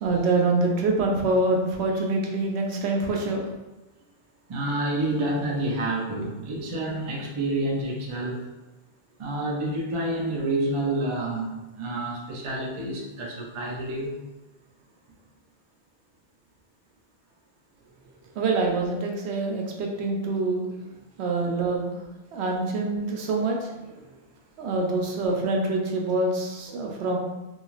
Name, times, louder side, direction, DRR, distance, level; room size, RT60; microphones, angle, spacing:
voice 1, 0.0-3.5 18.4-20.7 21.2-22.0 22.3-23.9 24.6-27.2, right 2 dB, 85° right, 1 dB, 0.8 m, -25 dB
voice 2, 4.5-8.4 9.2-14.2, right 1 dB, 45° right, -1 dB, 0.4 m, -28 dB
2.9 x 2.4 x 2.4 m, 1.1 s
omnidirectional pair, 1.1 m